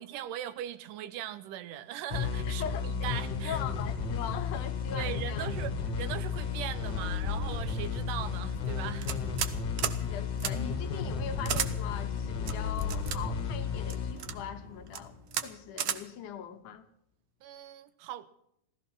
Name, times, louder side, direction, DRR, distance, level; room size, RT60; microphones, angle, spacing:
voice 1, 0.0-3.6 5.0-9.1 17.4-18.3, right 11 dB, 85° right, 2.3 m, -39 dB
sound 1, 2.1-15.4, left 5 dB, 45° left, 1.8 m, -33 dB
voice 2, 2.4-3.1 3.4-5.5 10.0-15.2 15.4-16.9, left 8 dB, 75° left, 2.5 m, -41 dB
sound 2, 9.0-9.5 9.8-10.0 10.4-10.5 11.4-11.7 12.5-13.2 13.9-14.4 14.9-15.0 15.3-15.5 15.8-16.0, right 9 dB, 70° right, 1.3 m, -32 dB
15.5 x 14.0 x 6.0 m
omnidirectional pair, 3.6 m